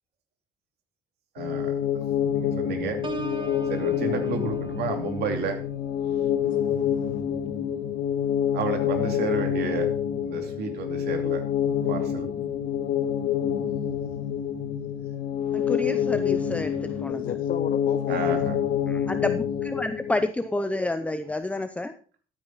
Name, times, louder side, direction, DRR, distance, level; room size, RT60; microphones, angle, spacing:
voice 1, 1.3-1.7 2.3-3.0 3.7-5.6 8.5-9.9 10.2-11.4 11.9-12.3 18.1-18.6, right 5 dB, 75° right, 2.7 m, -31 dB
sound 1, 1.4-20.2, left 9 dB, 80° left, 2.1 m, -27 dB
Piano, 3.0-8.7 9.1-9.5, right 4 dB, 30° right, 1.4 m, -42 dB
voice 2, 6.4-7.2 17.0-18.6, left 10 dB, 55° left, 0.8 m, -36 dB
voice 3, 15.5-17.4 18.1-18.4 18.9-21.9, left 2 dB, 10° left, 0.7 m, -30 dB
14.0 x 9.0 x 4.1 m
cardioid pair, 110°, 17 cm